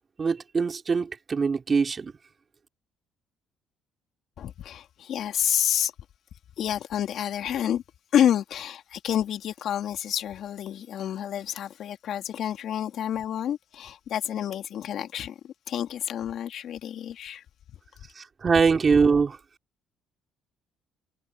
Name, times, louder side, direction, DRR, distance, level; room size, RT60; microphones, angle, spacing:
voice 1, 0.2-2.1 18.2-19.4, right 5 dB, 35° right, 2.5 m, -23 dB
voice 2, 4.4-5.9 6.6-7.8 8.1-17.4, left 10 dB, 65° left, 2.6 m, -29 dB
supercardioid pair, 80°, 0 cm